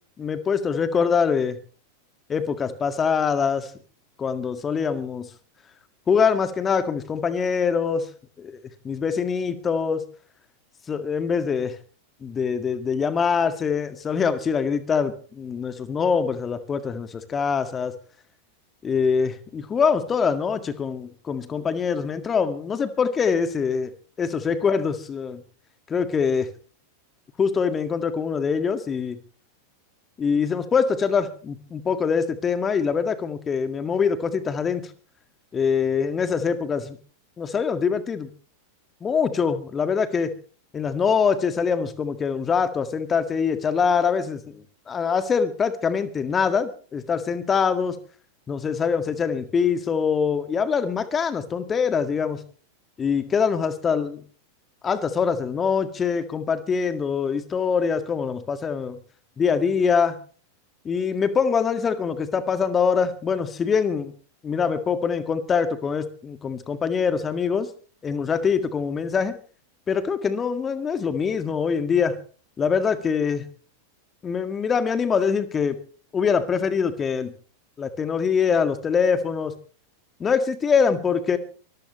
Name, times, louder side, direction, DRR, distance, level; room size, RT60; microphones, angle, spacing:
voice 1, 0.2-1.6 2.3-3.7 4.2-5.3 6.1-8.1 8.4-8.6 8.8-10.0 10.9-11.7 12.2-17.9 18.8-23.9 24.2-25.4 25.9-26.5 27.4-29.2 30.2-34.8 35.5-37.0 37.4-38.3 39.0-40.3 40.7-44.6 44.9-48.0 48.5-52.4 53.0-54.2 54.8-59.0 59.4-60.2 60.9-64.1 64.4-67.7 68.0-69.4 69.9-72.2 72.6-73.4 74.2-75.8 76.1-77.3 77.8-79.5 80.2-81.4, left 6 dB, 20° left, 11 dB, 1.8 m, -24 dB
24.0 x 14.5 x 3.1 m, 0.40 s
figure-of-eight pair, 90°, 0 cm